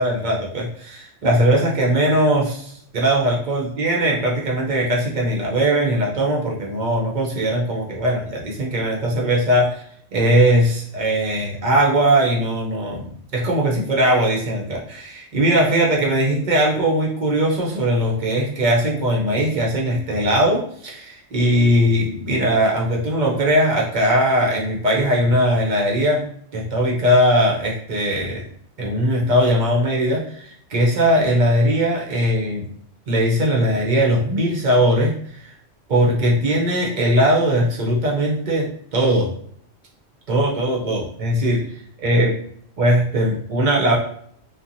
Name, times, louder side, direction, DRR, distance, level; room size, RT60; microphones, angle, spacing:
voice 1, 0.0-9.8 10.1-26.3 26.5-28.4 28.8-32.6 33.1-35.1 35.4-35.5 35.9-39.3 40.3-41.6 42.0-42.4 42.8-44.0, right 1 dB, 50° right, -2 dB, 0.7 m, -19 dB
2.8 x 2.2 x 2.5 m, 0.65 s
omnidirectional pair, 1.2 m